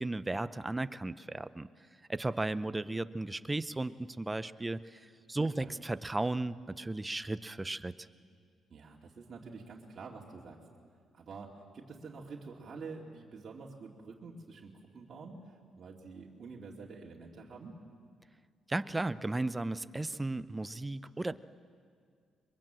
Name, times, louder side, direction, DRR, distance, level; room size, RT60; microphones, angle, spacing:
voice 1, 0.0-1.7 2.1-7.9 18.7-21.4, right 2 dB, 15° right, 14 dB, 0.6 m, -35 dB
voice 2, 5.4-5.7 8.7-10.6 11.1-17.7, right 4 dB, 45° right, -3 dB, 2.5 m, -47 dB
23.0 x 22.5 x 7.6 m, 2.1 s
cardioid pair, 90°, 0 cm